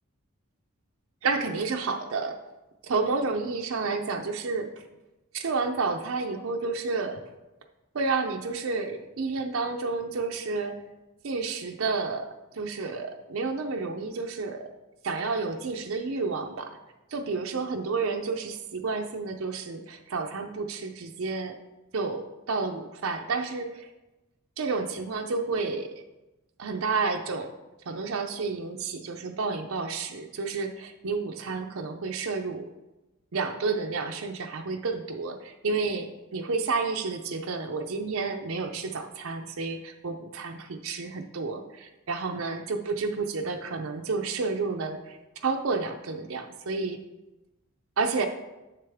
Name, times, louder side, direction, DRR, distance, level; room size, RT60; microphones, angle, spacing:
voice 1, 1.2-2.3 2.8-4.7 5.3-7.2 7.9-10.7 11.2-14.6 15.0-16.7 17.1-21.5 21.9-23.9 24.6-26.0 26.6-27.5 27.9-32.6 33.3-45.2 45.4-47.0 48.0-48.3, right 4 dB, 75° right, 4 dB, 0.6 m, -30 dB
7.2 x 6.6 x 3.5 m, 1.0 s
head